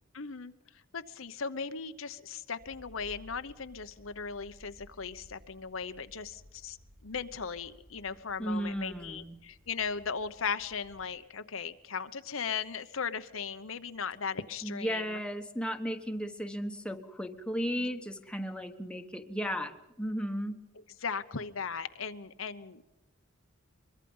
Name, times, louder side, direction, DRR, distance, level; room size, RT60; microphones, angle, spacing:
voice 1, 0.1-0.5 0.9-6.8 7.0-15.0 21.0-22.8, left 6 dB, 75° left, 10 dB, 1.0 m, -37 dB
sound 1, 2.6-11.1, left 1 dB, 50° right, 3.7 m, -57 dB
voice 2, 8.4-9.4 14.6-20.6, equal, 5° left, 5 dB, 1.3 m, -35 dB
23.5 x 22.5 x 5.6 m, 0.97 s
head